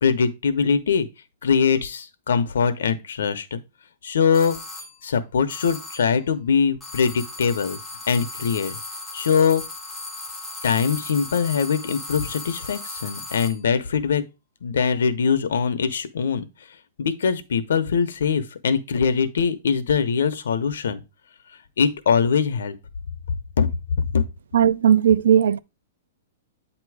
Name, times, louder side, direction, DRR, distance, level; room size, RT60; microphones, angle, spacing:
voice 1, 0.0-1.1 1.4-3.6 4.0-4.6 5.0-7.8 8.1-8.8 9.1-9.6 10.6-14.2 14.6-16.4 17.0-21.0 21.8-22.8 23.6-23.7 24.0-24.2, left 6 dB, 90° left, 0.9 m, -22 dB
sound 1, 4.3-5.0 5.5-6.2 6.8-13.7, left 2 dB, ahead, 0.8 m, -36 dB
voice 2, 24.5-25.6, right 9 dB, 80° right, 0.3 m, -17 dB
8.5 x 3.0 x 4.7 m
hypercardioid pair, 175°, 0 cm